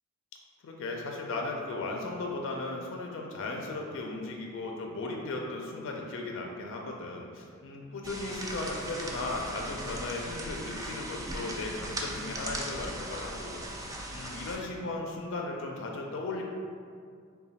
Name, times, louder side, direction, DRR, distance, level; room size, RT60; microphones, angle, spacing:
voice 1, 0.6-16.4, left 2 dB, 60° left, 1 dB, 0.4 m, -36 dB
sound 1, 8.0-14.6, right 1 dB, 15° right, 0.3 m, -38 dB
3.1 x 2.2 x 4.0 m, 2.2 s
head